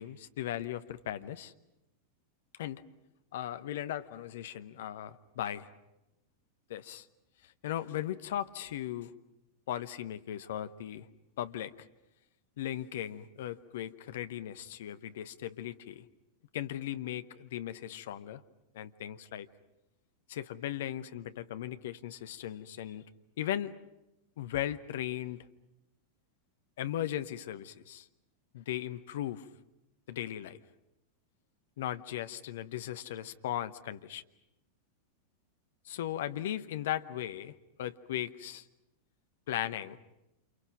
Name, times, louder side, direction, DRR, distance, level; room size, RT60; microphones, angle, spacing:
voice 1, 0.0-1.5 2.6-2.8 3.3-5.7 6.7-7.1 7.4-9.1 9.7-11.1 11.4-11.7 12.6-16.0 16.5-18.4 18.7-19.5 20.3-23.0 23.4-23.7 24.4-25.4 26.8-28.1 28.5-29.5 30.1-30.6 31.8-34.2 35.8-38.6 39.5-40.0, left 12 dB, 55° left, 11 dB, 1.0 m, -37 dB
28.5 x 28.0 x 6.0 m, 0.92 s
figure-of-eight pair, 90°, 0 cm